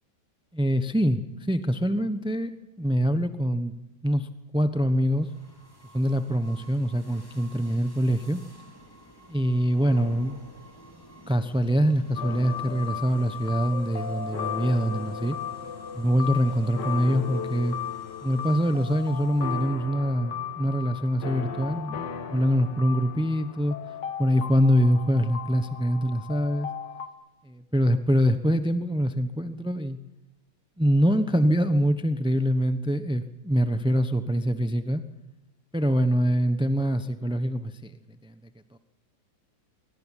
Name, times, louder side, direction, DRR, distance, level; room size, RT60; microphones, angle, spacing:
voice 1, 0.5-3.7 4.0-4.3 4.5-5.3 5.9-8.4 9.3-10.4 11.3-15.4 15.9-17.8 18.2-23.8 24.2-26.7 27.4-30.0 30.8-35.0 35.7-38.4 38.7-38.8, equal, 5° right, 10 dB, 0.4 m, -24 dB
sound 1, 5.1-19.9, equal, 10° left, 2.3 m, -51 dB
sound 2, 12.1-27.1, left 8 dB, 65° left, 2.1 m, -36 dB
23.0 x 18.0 x 10.0 m, 0.97 s
omnidirectional pair, 2.1 m